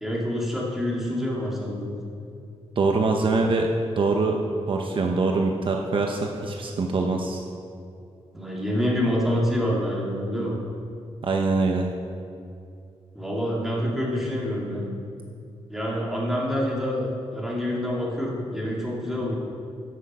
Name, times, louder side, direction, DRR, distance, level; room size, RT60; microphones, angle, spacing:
voice 1, 0.0-2.0 8.3-10.6 13.1-14.9 15.7-19.4, equal, 5° right, -4 dB, 2.4 m, -27 dB
voice 2, 2.8-3.7 4.0-4.4 4.7-7.4 11.2-11.9, right 3 dB, 50° right, 2 dB, 0.9 m, -23 dB
14.0 x 6.3 x 5.5 m, 2.5 s
wide cardioid pair, 120°, 11 cm